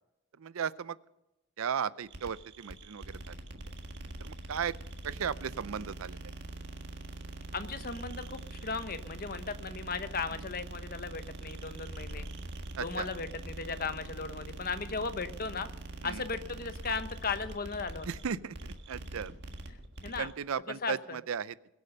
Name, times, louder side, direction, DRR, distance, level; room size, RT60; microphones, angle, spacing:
voice 1, 0.4-1.0 1.6-3.4 4.2-4.7 5.0-6.2 10.3-10.4 12.8-13.1 16.0-16.2 18.1-19.3 20.2-21.6, right 7 dB, 75° right, 18 dB, 0.5 m, -36 dB
sound 1, 2.1-20.3, right 2 dB, 55° right, 1.6 m, -43 dB
voice 2, 7.5-12.3 12.8-15.7 16.0-18.1 20.0-20.3 20.8-21.2, left 4 dB, 45° left, 10 dB, 0.9 m, -36 dB
22.5 x 8.1 x 5.5 m, 0.94 s
head